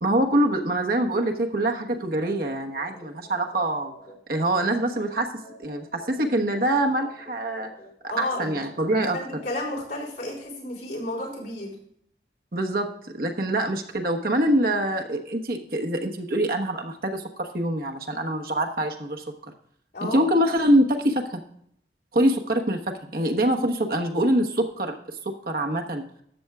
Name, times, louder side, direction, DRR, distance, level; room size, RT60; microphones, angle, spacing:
voice 1, 0.0-3.9 4.3-5.3 5.6-7.7 8.2-9.2 12.5-19.3 20.0-21.4 22.1-25.0 25.2-26.0, right 1 dB, 55° right, 3 dB, 1.1 m, -24 dB
sound 1, 2.2-10.5, equal, 25° left, 3.0 m, -48 dB
voice 2, 8.1-8.6 9.1-11.7 19.9-20.2, left 1 dB, 70° left, -5 dB, 4.3 m, -32 dB
13.0 x 7.8 x 2.3 m, 0.68 s
head